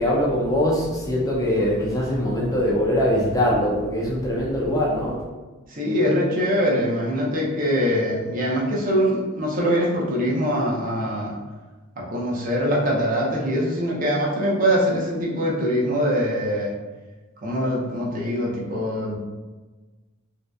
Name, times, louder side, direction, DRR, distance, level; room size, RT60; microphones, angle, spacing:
voice 1, 0.0-5.2, equal, 15° left, -4 dB, 0.3 m, -22 dB
voice 2, 1.4-1.7 5.7-11.4 12.0-16.7 17.4-19.2, equal, 40° right, -4 dB, 0.5 m, -23 dB
2.6 x 2.1 x 2.3 m, 1.2 s
head